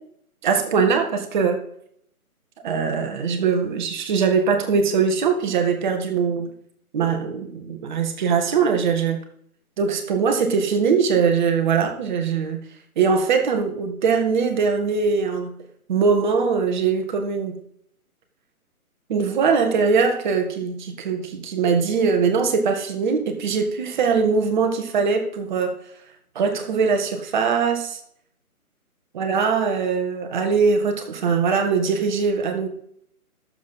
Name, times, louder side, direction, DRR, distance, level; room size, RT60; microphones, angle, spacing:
voice 1, 0.4-1.6 2.6-6.5 6.9-9.2 9.8-12.6 13.0-15.6 15.9-17.6 19.1-25.7 26.3-28.0 29.1-32.7, right 5 dB, 30° right, 5 dB, 1.5 m, -21 dB
11.5 x 7.4 x 4.1 m, 0.68 s
figure-of-eight pair, 140°, 44 cm